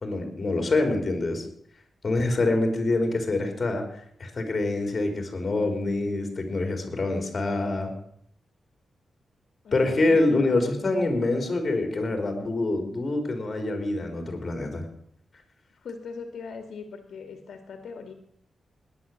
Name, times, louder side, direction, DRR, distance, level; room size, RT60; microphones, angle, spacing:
voice 1, 0.0-1.5 2.0-3.8 4.2-7.9 9.7-14.8, left 2 dB, 35° left, 5 dB, 3.8 m, -25 dB
voice 2, 9.6-10.6 15.8-18.1, left 5 dB, 75° left, 6 dB, 2.1 m, -40 dB
17.5 x 11.0 x 7.3 m, 0.70 s
wide cardioid pair, 150°, 0 cm